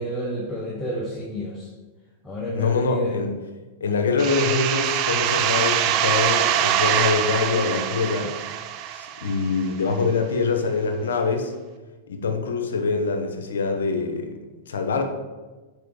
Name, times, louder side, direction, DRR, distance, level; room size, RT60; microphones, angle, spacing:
voice 1, 0.0-1.7 2.2-3.1, equal, 10° left, -4 dB, 1.0 m, -29 dB
voice 2, 2.5-3.3 3.8-8.3 8.9-11.5 12.1-14.4 14.7-15.0, left 4 dB, 80° left, 5 dB, 0.9 m, -24 dB
sound 1, 4.2-9.7, right 10 dB, 45° right, 0.5 m, -24 dB
4.9 x 4.8 x 4.7 m, 1.2 s
hypercardioid pair, 115°, 0 cm